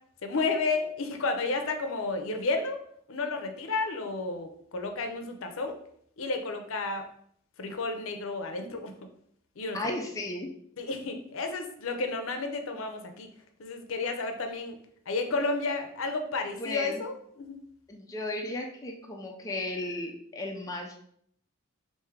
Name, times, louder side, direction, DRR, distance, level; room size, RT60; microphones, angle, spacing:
voice 1, 0.2-2.8 3.1-5.8 6.2-7.0 7.6-8.9 9.6-9.8 10.8-13.3 13.6-14.8 15.1-17.6, left 3 dB, 65° left, 6 dB, 0.6 m, -31 dB
voice 2, 9.7-10.5 16.6-17.0 17.9-21.0, left 2 dB, 15° left, 0 dB, 0.4 m, -35 dB
3.6 x 2.7 x 4.5 m, 0.66 s
head